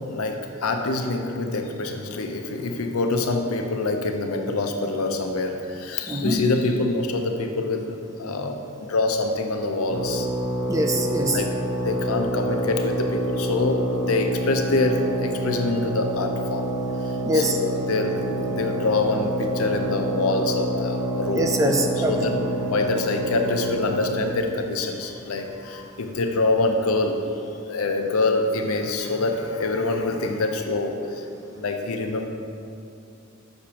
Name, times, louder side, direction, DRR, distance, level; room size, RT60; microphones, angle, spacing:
voice 1, 0.1-8.6 8.9-10.3 11.3-11.5 11.8-16.6 17.0-21.5 22.0-27.2 27.6-31.3 31.6-32.3, left 3 dB, 85° left, 4 dB, 0.6 m, -25 dB
voice 2, 6.1-6.4 10.7-11.4 17.2-17.6 21.3-22.2, right 1 dB, 15° right, 3 dB, 0.4 m, -23 dB
sound 1, 9.9-24.4, right 1 dB, 85° right, 1.1 m, -28 dB
6.4 x 6.0 x 2.9 m, 2.6 s
head